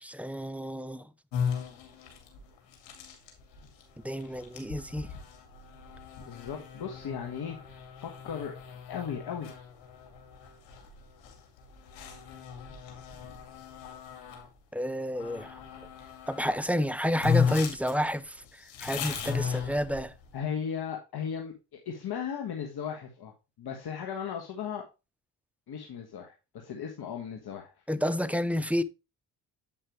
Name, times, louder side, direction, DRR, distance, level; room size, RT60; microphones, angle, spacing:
voice 1, 0.0-1.1 4.0-5.1 14.7-15.6 16.3-18.4 18.8-20.1 27.9-28.8, equal, 5° right, 0.7 m, -30 dB
sound 1, 1.3-14.5 15.1-16.6 16.9-17.0 17.2-20.3, left 7 dB, 80° left, 2.3 m, -36 dB
voice 2, 6.2-8.5 8.9-9.5 20.3-24.8 25.7-27.7, left 7 dB, 60° left, 1.5 m, -37 dB
8.5 x 5.4 x 3.1 m
supercardioid pair, 55°, 44 cm